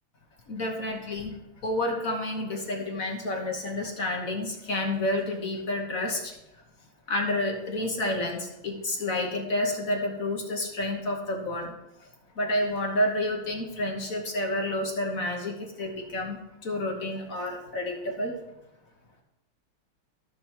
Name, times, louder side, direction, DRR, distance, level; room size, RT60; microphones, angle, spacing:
voice 1, 0.5-6.4 7.1-11.8 12.0-12.1 12.3-18.4, left 1 dB, 45° left, 1 dB, 1.4 m, -30 dB
14.5 x 6.2 x 2.9 m, 0.93 s
omnidirectional pair, 2.2 m